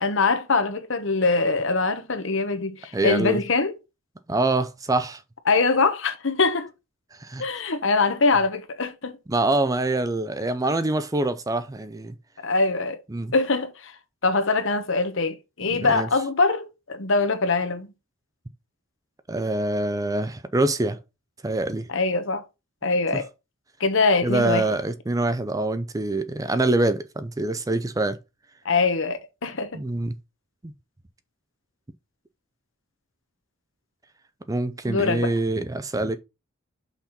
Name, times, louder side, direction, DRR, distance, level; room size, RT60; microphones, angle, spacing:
voice 1, 0.0-3.7 5.5-6.7 7.4-9.2 12.4-13.0 13.3-13.9 14.2-17.9 21.9-22.4 22.8-23.3 23.8-24.7 28.6-29.8 34.9-35.3, left 3 dB, 60° left, 1.1 m, -23 dB
voice 2, 2.9-3.4 4.3-5.2 7.2-7.4 9.3-12.1 13.1-13.3 15.7-16.1 19.3-21.0 21.4-21.9 24.2-28.2 29.7-30.1 34.5-36.2, right 2 dB, 15° right, 0.5 m, -25 dB
5.8 x 4.4 x 5.9 m
head